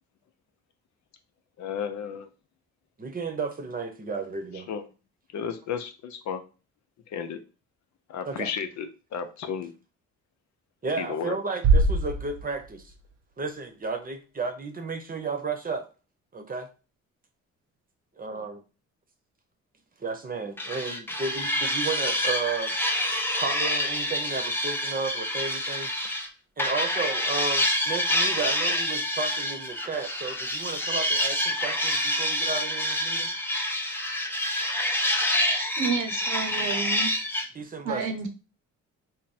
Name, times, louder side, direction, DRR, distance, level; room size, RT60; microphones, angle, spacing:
voice 1, 1.6-2.3 4.7-4.9 5.3-6.4 7.1-7.4 8.1-9.7 11.0-11.4, left 7 dB, 65° left, 0.7 m, -33 dB
voice 2, 3.0-4.7 8.3-8.5 10.8-12.9 13.4-15.9 16.3-16.7 18.2-18.6 20.0-22.8 23.4-25.9 26.6-33.3 37.5-38.3, right 4 dB, 30° right, 0.9 m, -33 dB
Bass drum, 11.6-13.3, right 3 dB, 60° right, 0.6 m, -24 dB
sound 1, 20.6-26.3 26.6-37.5, left 1 dB, 5° left, 0.6 m, -27 dB
voice 3, 35.8-37.1 37.8-38.3, right 5 dB, 75° right, 0.9 m, -30 dB
3.5 x 2.1 x 4.2 m
cardioid pair, 90°, 30 cm